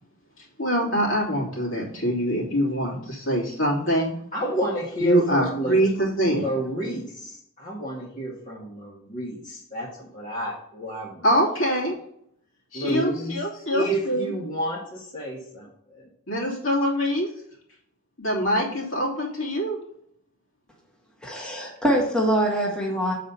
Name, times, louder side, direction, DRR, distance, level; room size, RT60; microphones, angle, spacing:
voice 1, 0.4-4.1 5.0-6.4 11.2-12.0 12.7-14.3 16.3-17.3 18.2-19.8, equal, 65° left, -3 dB, 2.9 m, -24 dB
voice 2, 4.3-5.7 6.3-11.2 12.7-13.4 13.7-16.0, right 1 dB, 40° left, -6 dB, 1.6 m, -30 dB
voice 3, 21.2-23.1, right 1 dB, 5° left, -3 dB, 1.3 m, -24 dB
7.5 x 4.2 x 5.3 m, 0.69 s
head